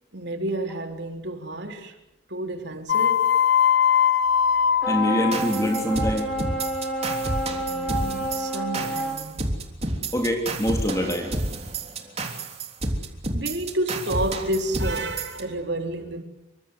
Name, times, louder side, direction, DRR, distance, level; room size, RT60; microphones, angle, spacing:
voice 1, 0.1-2.0 2.3-3.3 7.5-9.5 13.3-16.2, right 1 dB, 60° right, 3.8 m, -30 dB
sound 1, 2.9-5.5, left 8 dB, 60° left, 1.1 m, -20 dB
sound 2, 4.8-9.3, right 1 dB, ahead, 7.4 m, -29 dB
voice 2, 4.9-6.4 10.1-11.3, equal, 15° left, 3.4 m, -25 dB
sound 3, 5.3-15.4, right 2 dB, 30° right, 3.4 m, -30 dB
28.0 x 25.0 x 8.3 m
head